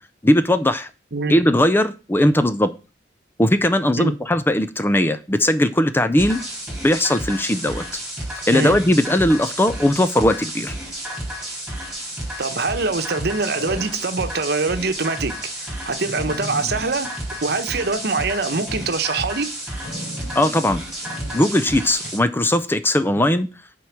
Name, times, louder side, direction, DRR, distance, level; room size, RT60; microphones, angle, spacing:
voice 1, 0.2-0.9 1.3-2.7 3.4-6.4 6.8-7.8 8.5-10.8 20.4-20.8 21.3-23.5, left 1 dB, 10° left, 0.5 m, -18 dB
sound 1, 6.2-22.2, right 1 dB, 5° right, 3.7 m, -31 dB
sound 2, 12.0-12.3 13.5-14.3 14.8-14.9 15.3-15.4 15.7-15.8 16.0-18.1 18.5-18.9 19.8-20.6 21.0-21.4 22.0-22.2, equal, 50° left, 4.3 m, -36 dB
voice 2, 12.4-15.3 15.6-17.1 17.4-19.5, right 3 dB, 60° right, 1.0 m, -24 dB
7.9 x 4.7 x 7.3 m
head